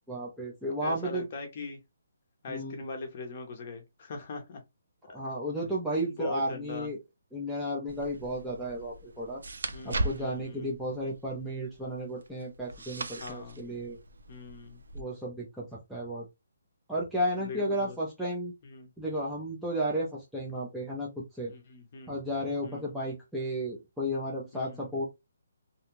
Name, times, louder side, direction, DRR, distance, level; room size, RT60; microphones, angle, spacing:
voice 1, 0.1-1.2 2.5-2.7 5.1-7.0 7.3-9.4 9.8-14.0 14.9-16.3 16.9-18.5 19.0-21.5 22.1-25.1, equal, ahead, 0.5 m, -33 dB
voice 2, 0.8-1.8 2.4-4.6 5.6-5.8 6.0-6.9 9.7-10.7 13.2-13.6 14.3-14.8 17.4-18.0 18.6-18.9 21.5-22.2 22.6-22.9 24.5-24.9, left 3 dB, 30° left, 0.7 m, -41 dB
sound 1, 7.9-15.0, right 2 dB, 85° right, 0.5 m, -39 dB
2.6 x 2.3 x 2.9 m
hypercardioid pair, 175°, 0 cm